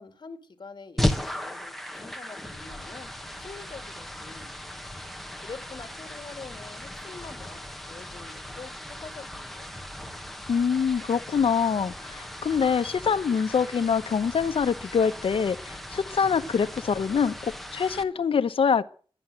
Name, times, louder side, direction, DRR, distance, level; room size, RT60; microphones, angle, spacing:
voice 1, 0.0-3.1 3.4-4.8 5.4-7.6 7.9-8.7 9.0-9.7, left 4 dB, 50° left, 2.1 m, -45 dB
sound 1, 1.0-18.0, left 1 dB, ahead, 1.4 m, -36 dB
voice 2, 10.5-18.9, left 6 dB, 75° left, 0.9 m, -25 dB
12.0 x 11.0 x 7.6 m
wide cardioid pair, 95°, 9 cm